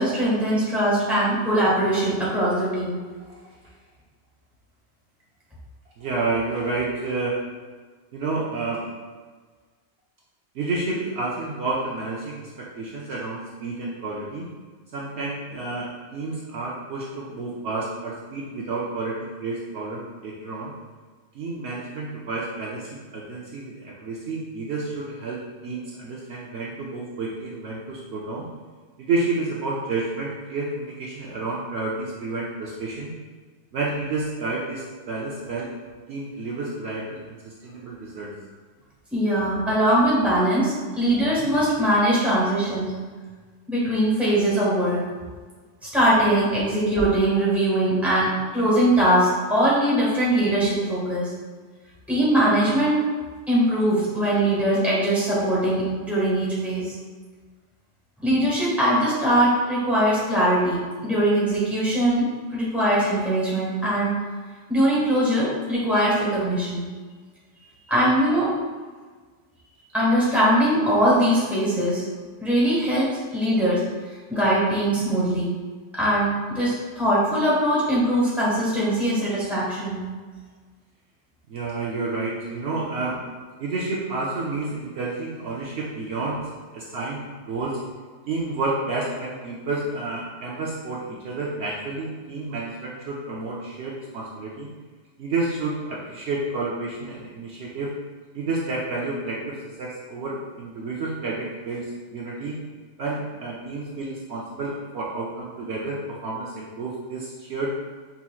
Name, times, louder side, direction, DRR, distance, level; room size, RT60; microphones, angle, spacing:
voice 1, 0.0-3.0 39.1-43.0 43.7-45.1 45.9-51.3 52.1-53.0 53.5-57.0 58.2-64.1 64.7-66.9 67.9-68.5 69.9-72.0 72.4-73.8 74.3-75.6 75.9-80.1, right 1 dB, ahead, -8 dB, 1.2 m, -21 dB
voice 2, 6.0-7.4 8.1-8.8 10.5-14.5 14.9-20.7 21.3-28.5 29.0-33.1 33.7-35.7 36.1-38.3 81.5-83.2 83.6-86.4 86.7-87.8 88.3-94.7 95.2-97.9 98.3-102.6 103.0-107.7, right 3 dB, 65° right, -5 dB, 0.8 m, -30 dB
5.4 x 2.9 x 2.3 m, 1.5 s
omnidirectional pair, 1.3 m